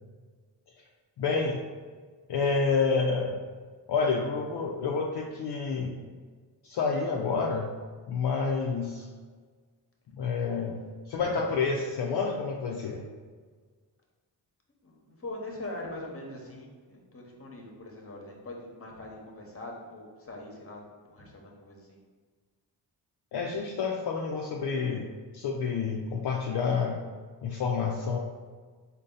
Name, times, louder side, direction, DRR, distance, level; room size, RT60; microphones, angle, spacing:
voice 1, 1.2-1.6 2.3-3.4 3.9-6.0 6.6-7.7 8.1-9.1 10.2-10.8 11.1-13.0 23.3-27.0 27.4-28.2, left 5 dB, 65° left, -1 dB, 0.5 m, -29 dB
voice 2, 14.8-20.8 21.1-22.0, left 1 dB, 30° left, -1 dB, 0.9 m, -42 dB
4.0 x 2.1 x 3.8 m, 1.5 s
cardioid pair, 55°, 44 cm